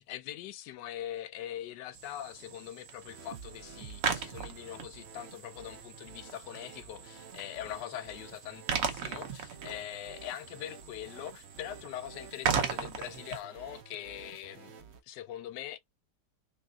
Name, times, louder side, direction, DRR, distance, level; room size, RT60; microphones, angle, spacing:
voice 1, 0.0-15.8, left 12 dB, 80° left, 1.2 m, -42 dB
sound 1, 1.9-13.4, right 6 dB, 60° right, 1.0 m, -38 dB
sound 2, 3.1-15.0, right 7 dB, 80° right, 0.6 m, -51 dB
3.5 x 3.2 x 2.2 m
omnidirectional pair, 1.9 m